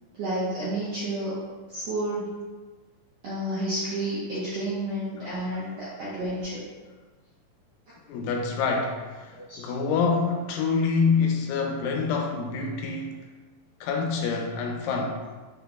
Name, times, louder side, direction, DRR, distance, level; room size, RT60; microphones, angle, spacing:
voice 1, 0.2-1.3 1.7-2.4 3.2-6.6 9.3-9.7, right 1 dB, 75° right, -10 dB, 1.5 m, -30 dB
voice 2, 5.2-5.7 8.1-13.3 13.8-15.2, left 5 dB, 80° left, 2 dB, 2.2 m, -27 dB
5.6 x 4.0 x 2.2 m, 1.3 s
omnidirectional pair, 4.2 m